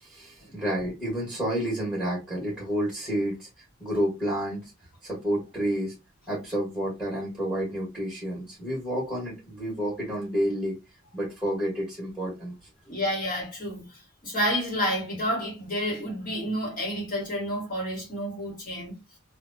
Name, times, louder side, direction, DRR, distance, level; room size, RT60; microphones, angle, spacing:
voice 1, 0.0-3.5 3.8-4.7 5.0-5.9 6.3-10.8 11.1-12.5, equal, ahead, 1.2 m, -30 dB
voice 2, 12.9-13.9 14.2-19.0, equal, 40° left, 1.3 m, -29 dB
2.8 x 2.2 x 2.6 m
head